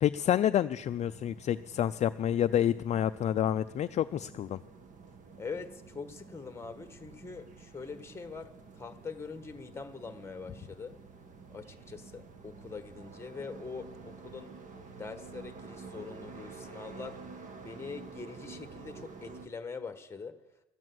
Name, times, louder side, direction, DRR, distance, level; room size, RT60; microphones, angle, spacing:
voice 1, 0.0-4.6, left 10 dB, 40° left, 11 dB, 0.4 m, -28 dB
sound 1, 0.8-19.5, right 4 dB, 50° right, 1.5 m, -50 dB
voice 2, 5.4-11.0 11.5-14.5 15.0-17.2 17.6-20.4, left 4 dB, 15° left, 9 dB, 1.3 m, -43 dB
13.5 x 9.2 x 7.8 m, 0.97 s
cardioid pair, 110°, 17 cm